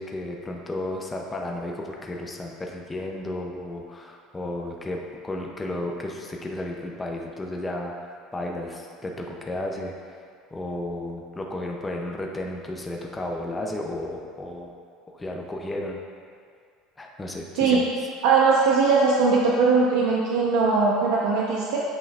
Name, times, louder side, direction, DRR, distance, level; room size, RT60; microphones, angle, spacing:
voice 1, 0.0-5.0 5.2-9.9 10.5-14.7 15.1-16.0 17.0-17.8, left 1 dB, 10° left, 0 dB, 0.5 m, -33 dB
voice 2, 18.2-21.8, right 4 dB, 90° right, -4 dB, 0.7 m, -20 dB
8.2 x 5.4 x 2.4 m, 2.1 s
cardioid pair, 180°, 0 cm